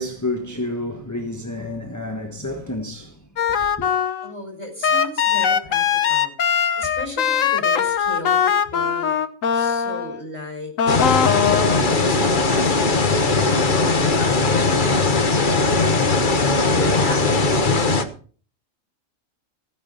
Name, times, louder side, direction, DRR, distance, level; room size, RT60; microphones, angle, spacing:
voice 1, 0.0-3.2 3.5-3.9, left 1 dB, 15° left, 1.4 m, -29 dB
sound 1, 3.4-4.3 4.8-10.2 10.8-11.8, left 8 dB, 75° left, 1.4 m, -20 dB
voice 2, 4.2-6.3 6.8-9.2 9.5-11.4 11.8-15.0 15.6-17.9, left 1 dB, 25° right, 4.7 m, -35 dB
sound 2, 10.9-18.0, left 3 dB, 40° left, 1.4 m, -19 dB
15.5 x 9.8 x 5.5 m
omnidirectional pair, 1.4 m